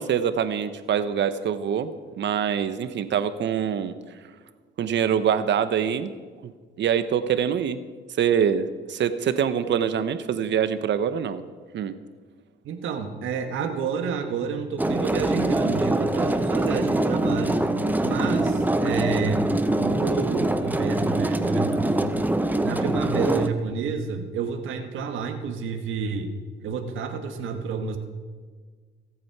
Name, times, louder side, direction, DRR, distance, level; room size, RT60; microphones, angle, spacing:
voice 1, 0.0-3.9 4.8-6.1 6.4-6.5 6.8-7.8 8.2-11.4 11.7-11.9, right 8 dB, 65° right, 11 dB, 1.0 m, -24 dB
voice 2, 12.6-17.6 18.0-19.5 19.7-22.3 22.6-26.3 26.6-28.0, right 5 dB, 80° right, 5 dB, 1.5 m, -29 dB
sound 1, 14.8-23.5, right 1 dB, 10° right, 0.8 m, -24 dB
24.0 x 8.6 x 4.8 m, 1.5 s
cardioid pair, 90°, 20 cm